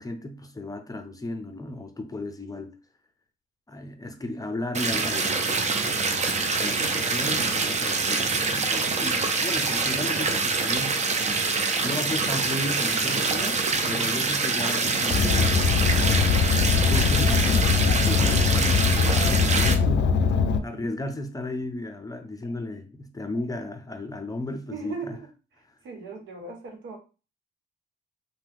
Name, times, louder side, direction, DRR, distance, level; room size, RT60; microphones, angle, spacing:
voice 1, 0.0-2.7 3.7-11.0 11.8-16.3 16.9-20.2 20.6-25.1, left 1 dB, 20° left, 0.6 m, -35 dB
sound 1, 4.7-19.7, right 4 dB, 35° right, 0.6 m, -25 dB
Car, 15.1-20.6, left 5 dB, 65° left, 0.4 m, -22 dB
voice 2, 15.9-16.9 20.1-20.8 24.7-25.3 25.8-27.0, right 4 dB, 75° right, 1.0 m, -39 dB
2.8 x 2.2 x 3.5 m
cardioid pair, 90°, 20 cm